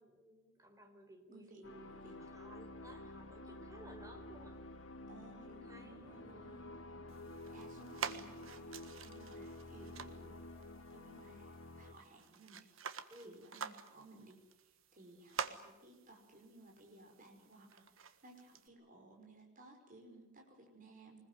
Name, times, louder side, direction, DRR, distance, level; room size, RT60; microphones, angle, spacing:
voice 1, 0.0-1.9 2.2-4.6 5.5-6.5 13.1-13.4, right 1 dB, 15° right, 5 dB, 4.3 m, -57 dB
voice 2, 1.3-1.7 2.0-2.1 5.1-6.6 7.5-10.4 10.9-21.2, right 2 dB, 45° right, 2 dB, 5.6 m, -59 dB
sound 1, 1.6-11.9, left 2 dB, 70° left, 2.5 m, -51 dB
sound 2, 7.1-18.7, right 6 dB, 80° right, 1.5 m, -49 dB
25.0 x 21.0 x 9.7 m, 1.1 s
head